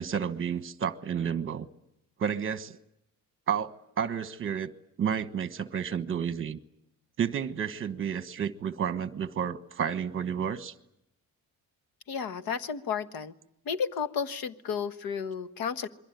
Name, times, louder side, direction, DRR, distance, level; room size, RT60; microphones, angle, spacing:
voice 1, 0.0-1.7 2.2-2.8 3.5-4.7 5.0-6.6 7.2-10.7, right 7 dB, 35° right, 1.2 m, -31 dB
voice 2, 12.1-13.3 13.6-15.9, left 6 dB, 75° left, 1.5 m, -32 dB
27.5 x 22.5 x 9.2 m
cardioid pair, 170°, 36 cm